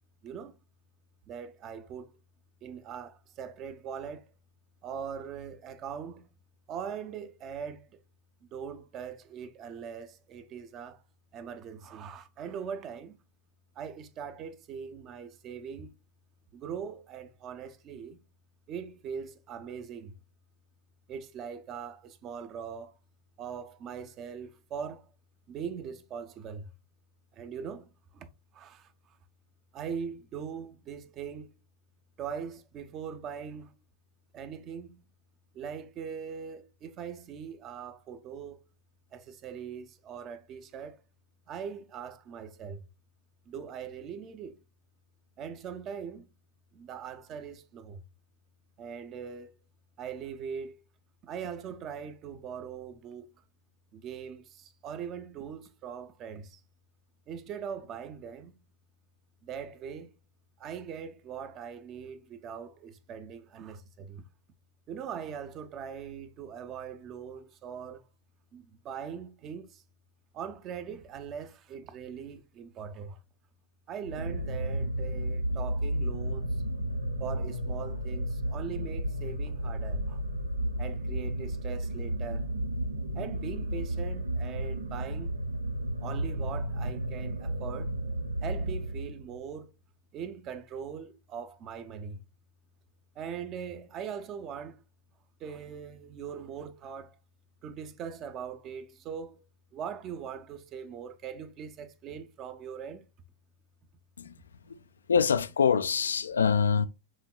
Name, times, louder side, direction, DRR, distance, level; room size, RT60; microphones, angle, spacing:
voice 1, 0.2-0.6 1.3-2.2 2.6-4.3 4.8-6.4 6.7-8.0 8.4-11.0 11.3-13.2 13.8-15.9 16.5-18.2 18.7-20.2 21.1-22.9 23.4-25.1 25.5-26.7 27.3-28.3 28.5-29.2 29.7-31.5 32.2-33.7 34.3-35.1 35.5-38.6 39.1-41.0 41.5-42.9 43.5-44.6 45.4-46.3 46.7-48.0 48.8-49.5 50.0-50.8 51.2-53.3 53.9-56.6 57.3-58.6 59.4-60.2 60.6-64.2 64.9-68.0 68.5-69.8 70.3-73.2 73.9-76.6 77.2-80.2 80.8-82.5 83.1-85.4 86.0-87.9 88.4-89.7 90.1-92.2 93.1-94.8 95.4-97.2 97.6-99.4 99.7-103.1, right 7 dB, 35° right, 0.7 m, -41 dB
sound 1, 74.0-89.4, right 1 dB, 75° right, 0.6 m, -33 dB
voice 2, 105.1-106.9, left 6 dB, 70° left, 0.3 m, -25 dB
6.3 x 3.6 x 2.3 m
figure-of-eight pair, 90°, 0 cm